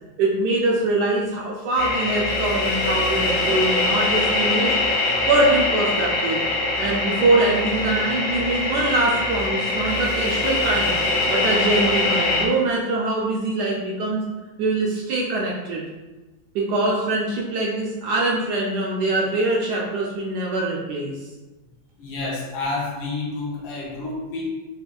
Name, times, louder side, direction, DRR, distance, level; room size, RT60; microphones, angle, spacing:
voice 1, 0.2-4.8 5.3-6.4 6.8-10.9 11.3-14.2 14.6-15.8 16.5-21.2, right 2 dB, 70° right, -3 dB, 1.0 m, -23 dB
sound 1, 1.8-12.5, left 2 dB, 70° left, 0.9 m, -23 dB
voice 2, 22.0-24.5, left 3 dB, 85° left, -3 dB, 1.6 m, -29 dB
5.0 x 2.4 x 2.3 m, 1.1 s
omnidirectional pair, 2.1 m